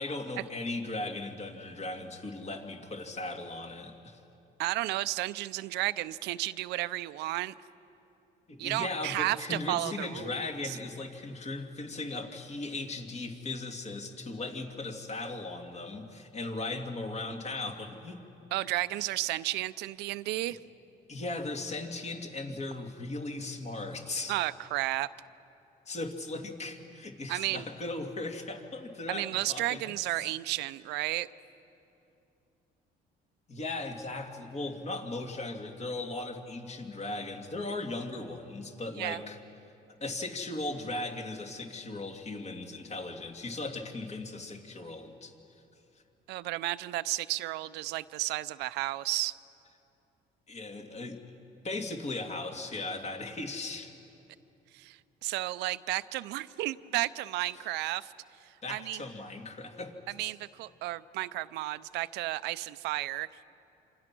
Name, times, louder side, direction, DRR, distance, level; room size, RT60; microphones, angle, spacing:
voice 1, 0.0-4.2 8.5-18.2 19.0-19.1 21.1-24.4 25.9-30.0 33.5-39.4 40.0-45.3 50.5-51.2 51.6-53.9 57.5-57.7 58.6-60.3, left 2 dB, 40° left, 3 dB, 2.7 m, -37 dB
voice 2, 4.6-7.5 8.6-10.3 10.6-10.8 18.5-20.6 24.3-25.1 27.3-27.6 29.1-31.3 39.0-39.2 46.3-49.3 54.7-58.1 58.7-59.0 60.2-63.4, right 17 dB, 85° right, 14 dB, 0.6 m, -33 dB
27.5 x 27.0 x 6.1 m, 2.8 s
cardioid pair, 110°, 17 cm